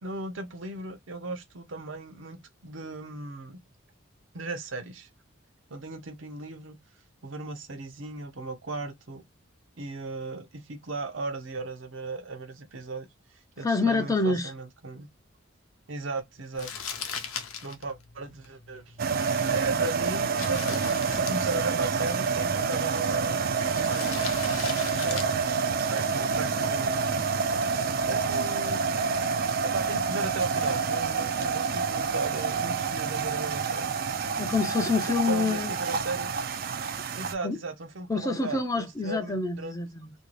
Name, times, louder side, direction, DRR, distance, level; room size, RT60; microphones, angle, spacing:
voice 1, 0.0-3.6 4.3-5.1 5.7-6.7 7.2-9.2 9.8-13.1 13.6-15.1 15.9-16.7 17.6-18.9 19.5-23.4 23.7-24.7 25.0-25.3 25.9-27.3 28.1-28.8 29.7-33.9 35.3-36.3 37.1-39.8, right 3 dB, 65° right, 0.7 m, -36 dB
voice 2, 13.6-14.5 34.4-35.7 37.4-37.6 38.1-40.1, left 3 dB, 15° left, 0.4 m, -27 dB
Crumpling crinkling, 16.5-26.7, left 6 dB, 90° left, 0.7 m, -41 dB
sound 1, 19.0-37.3, right 5 dB, 45° right, 0.3 m, -28 dB
2.8 x 2.6 x 3.1 m
head